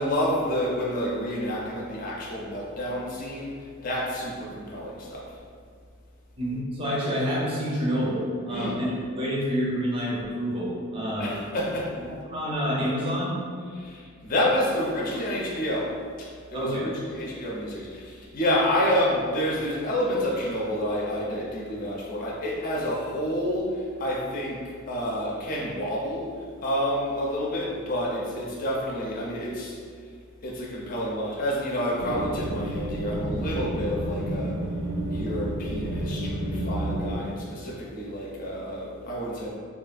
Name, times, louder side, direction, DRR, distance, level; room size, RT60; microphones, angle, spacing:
voice 1, 0.0-5.4 8.5-8.8 11.2-12.0 13.7-26.3 26.6-29.8 30.4-34.6 35.1-39.5, equal, 40° left, -4 dB, 0.4 m, -29 dB
voice 2, 6.4-11.4 12.2-13.4 16.5-16.9, equal, 25° right, -6 dB, 0.5 m, -28 dB
sound 1, 32.0-37.2, right 1 dB, 80° right, 0.4 m, -30 dB
3.0 x 2.3 x 2.4 m, 2.1 s
head